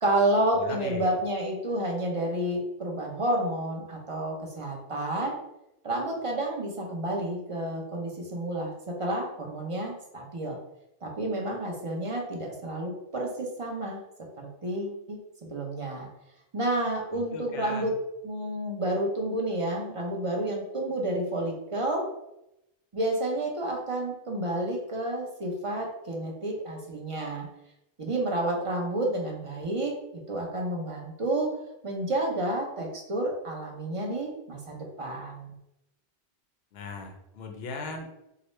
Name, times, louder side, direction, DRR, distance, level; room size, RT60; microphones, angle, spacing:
voice 1, 0.0-5.3 5.8-10.6 11.0-14.0 14.4-15.2 15.5-16.1 16.5-17.9 18.2-22.0 22.9-27.5 28.0-29.9 30.3-31.5 31.8-35.5, right 1 dB, 35° right, -1 dB, 0.7 m, -30 dB
voice 2, 0.6-1.1 17.1-17.9 36.7-38.2, left 3 dB, 70° left, 3 dB, 0.9 m, -38 dB
4.8 x 2.1 x 3.1 m, 0.86 s
omnidirectional pair, 1.1 m